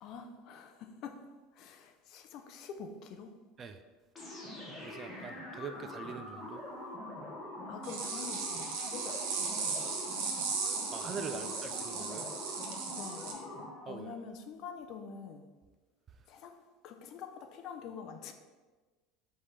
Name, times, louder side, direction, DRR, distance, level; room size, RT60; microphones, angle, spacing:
voice 1, 0.0-1.2 1.5-3.3 7.6-10.2 11.3-11.7 12.9-13.5 13.9-15.5 16.3-18.3, left 6 dB, 40° left, 6 dB, 0.5 m, -46 dB
sound 1, 4.1-14.0, left 1 dB, 15° left, 1.1 m, -44 dB
voice 2, 4.8-6.6 10.9-12.3 13.9-14.1, right 5 dB, 25° right, 8 dB, 0.3 m, -43 dB
sound 2, 7.8-13.3, right 5 dB, 70° right, 1.1 m, -37 dB
5.0 x 3.4 x 5.6 m, 1.3 s
cardioid pair, 170°, 0 cm